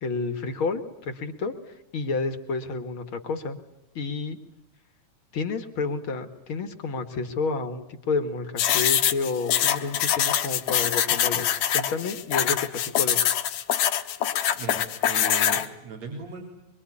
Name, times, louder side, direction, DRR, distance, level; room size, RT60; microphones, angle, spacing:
voice 1, 0.0-3.6 4.0-4.4 5.3-11.5 11.7-12.7 12.9-13.3, left 4 dB, 50° left, 8 dB, 2.4 m, -30 dB
sound 1, 8.6-15.7, left 10 dB, 70° left, 2.5 m, -24 dB
voice 2, 14.5-16.5, right 4 dB, 60° right, 1 dB, 4.7 m, -37 dB
24.5 x 24.0 x 9.9 m, 0.84 s
omnidirectional pair, 3.4 m